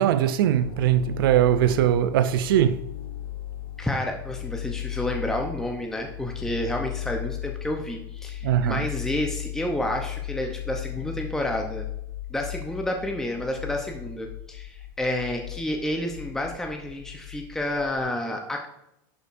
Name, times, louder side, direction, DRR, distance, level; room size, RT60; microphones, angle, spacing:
voice 1, 0.0-2.9 8.4-8.8, right 10 dB, 75° right, 0.5 m, -21 dB
sound 1, 0.5-18.0, left 12 dB, 65° left, 1.3 m, -36 dB
voice 2, 3.8-11.9 12.3-18.7, left 1 dB, 5° left, 0.7 m, -30 dB
11.0 x 5.1 x 2.6 m
supercardioid pair, 130°, 12 cm